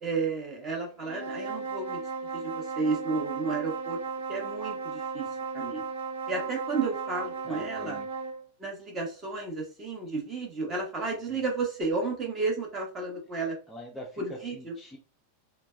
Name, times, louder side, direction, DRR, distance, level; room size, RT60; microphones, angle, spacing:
voice 1, 0.0-2.0 2.3-4.0 4.3-5.3 5.5-5.8 6.3-8.0 8.6-13.6 14.2-14.7, right 3 dB, 25° right, 0 dB, 1.0 m, -32 dB
sound 1, 1.0-8.4, right 5 dB, 60° right, 0.6 m, -35 dB
voice 2, 7.4-8.1 11.3-11.4 13.7-15.0, left 1 dB, 10° left, -1 dB, 0.5 m, -44 dB
3.2 x 2.1 x 2.2 m, 0.35 s
figure-of-eight pair, 90°, 0 cm